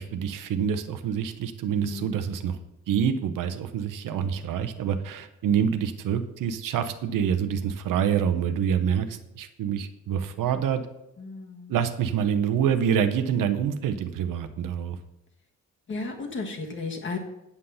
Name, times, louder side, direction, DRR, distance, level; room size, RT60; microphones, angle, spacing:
voice 1, 0.0-2.6 2.9-10.8 11.7-15.0, right 8 dB, 80° right, 9 dB, 0.9 m, -26 dB
voice 2, 1.8-2.3 11.2-11.7 15.9-17.2, left 4 dB, 35° left, 2 dB, 1.7 m, -34 dB
8.4 x 7.9 x 5.6 m, 0.89 s
cardioid pair, 155°, 32 cm